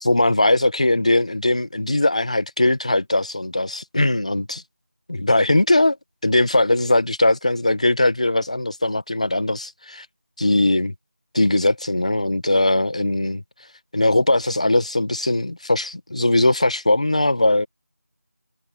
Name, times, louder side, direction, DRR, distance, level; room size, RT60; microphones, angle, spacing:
voice 1, 0.0-4.6 5.1-6.0 6.2-10.0 10.4-10.9 11.3-13.4 13.9-17.7, left 2 dB, 25° left, 1.5 m, -20 dB
figure-of-eight pair, 175°, 8 cm